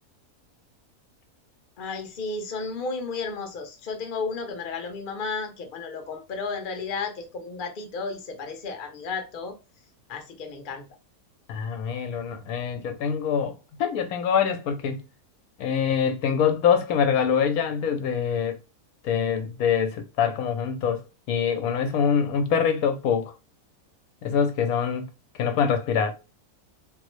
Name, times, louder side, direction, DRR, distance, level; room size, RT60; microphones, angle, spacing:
voice 1, 1.8-9.5 10.1-10.8, left 4 dB, 50° left, 0.6 m, -33 dB
voice 2, 11.5-15.0 15.6-18.6 19.0-23.3 24.2-25.1 25.3-26.1, left 7 dB, 75° left, 1.0 m, -24 dB
3.7 x 2.0 x 3.1 m
omnidirectional pair, 1.6 m